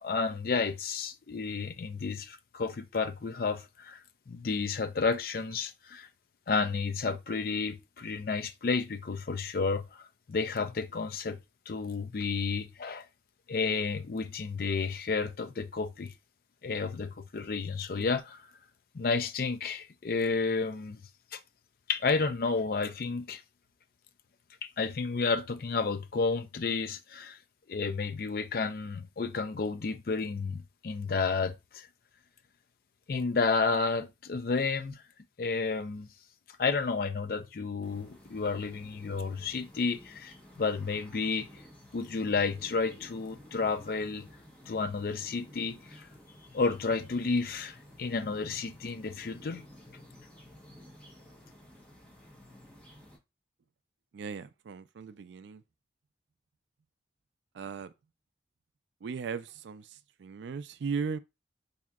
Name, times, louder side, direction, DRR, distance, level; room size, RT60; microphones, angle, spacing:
voice 1, 0.0-4.0 4.3-6.1 6.5-11.4 11.7-13.0 13.5-16.1 16.6-18.4 18.9-21.0 21.3-21.4 21.9-23.4 24.6-27.4 27.7-31.9 33.1-35.0 35.4-36.1 36.6-41.5 41.9-44.2 44.7-46.1 46.5-49.7, left 4 dB, 55° left, 0.4 m, -31 dB
sound 1, 37.8-53.2, left 1 dB, 10° left, 1.0 m, -53 dB
voice 2, 54.1-55.6 57.5-57.9 59.0-61.2, right 5 dB, 80° right, 0.3 m, -37 dB
4.3 x 2.7 x 2.3 m
head